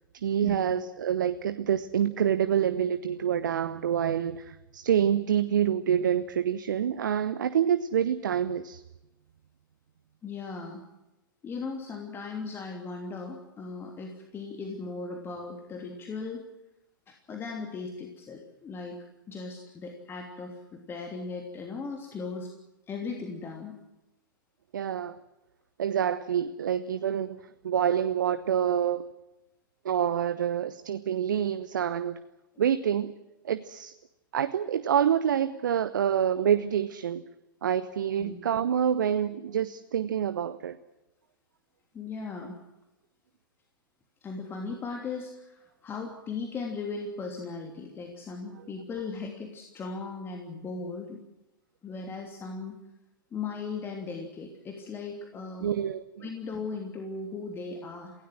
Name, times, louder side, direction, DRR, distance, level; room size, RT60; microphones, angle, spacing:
voice 1, 0.2-8.8 24.7-25.2 25.8-29.1 29.8-32.2 32.6-33.1 33.4-33.9 34.3-37.2 37.6-40.8 55.6-56.3, right 9 dB, 65° right, 12 dB, 1.0 m, -27 dB
voice 2, 10.2-10.8 11.4-16.4 17.1-19.0 19.3-22.5 22.9-23.8 38.2-38.3 41.9-42.6 44.2-51.2 51.8-52.8 53.3-55.7 56.2-58.1, left 4 dB, 20° left, 2 dB, 3.0 m, -37 dB
27.5 x 17.0 x 7.7 m, 0.99 s
figure-of-eight pair, 105°, 11 cm